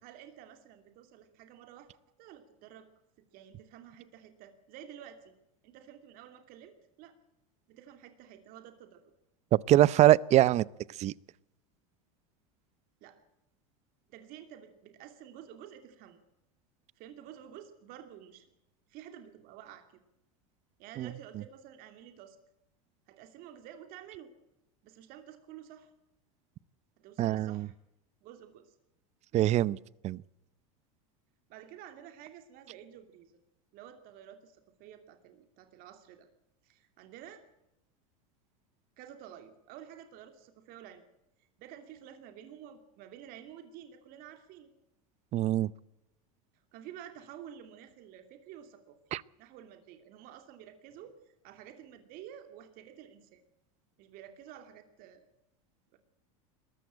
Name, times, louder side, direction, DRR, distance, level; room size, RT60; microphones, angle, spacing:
voice 1, 0.0-1.9 2.2-2.9 3.3-5.3 5.6-7.2 7.7-9.0 13.0-13.2 14.1-16.2 17.0-18.4 18.9-19.8 20.8-22.4 23.1-24.3 24.8-25.9 27.0-27.7 28.2-28.8 29.3-29.7 31.5-33.3 33.7-36.3 36.6-37.5 39.0-41.0 41.6-44.7 46.7-49.0 49.4-53.4 54.0-55.3 55.9-56.0, right 10 dB, 55° right, 2.7 m, -50 dB
voice 2, 9.5-10.6 11.0-11.1 21.0-21.1 27.2-27.7 29.3-29.8 30.0-30.2 45.3-45.7 49.1-49.2, right 14 dB, 40° right, 0.6 m, -23 dB
21.5 x 14.0 x 9.0 m
supercardioid pair, 115°, 18 cm